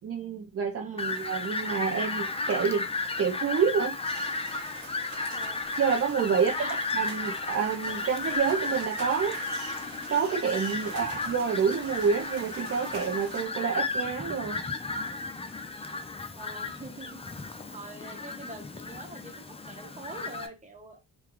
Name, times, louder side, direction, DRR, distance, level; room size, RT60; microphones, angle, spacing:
voice 1, 0.0-2.9 3.2-4.0 5.8-6.7 6.9-9.8 10.1-14.6, right 6 dB, 45° right, 0.5 m, -28 dB
voice 2, 0.8-1.1 5.3-5.6 6.3-6.8 10.8-11.1 16.3-17.2 17.7-21.0, right 2 dB, 20° right, 1.0 m, -45 dB
Fowl, 1.0-20.5, left 3 dB, 20° left, 0.4 m, -34 dB
sound 1, 4.0-13.5, right 4 dB, 80° right, 1.2 m, -46 dB
3.7 x 2.3 x 3.0 m
cardioid pair, 100°, 34 cm